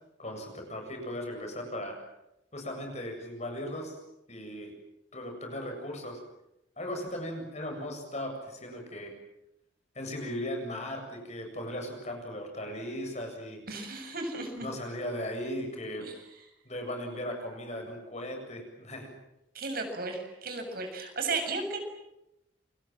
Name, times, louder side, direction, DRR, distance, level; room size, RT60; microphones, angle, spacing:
voice 1, 0.2-2.0 2.5-4.0 4.3-4.7 5.1-6.2 6.8-9.1 9.9-13.6 14.6-16.1 16.6-19.1, left 1 dB, 35° left, 3 dB, 7.7 m, -37 dB
voice 2, 13.7-14.7 16.0-16.1 19.5-21.8, right 3 dB, 50° right, 5 dB, 6.8 m, -34 dB
29.5 x 25.5 x 7.6 m, 0.87 s
head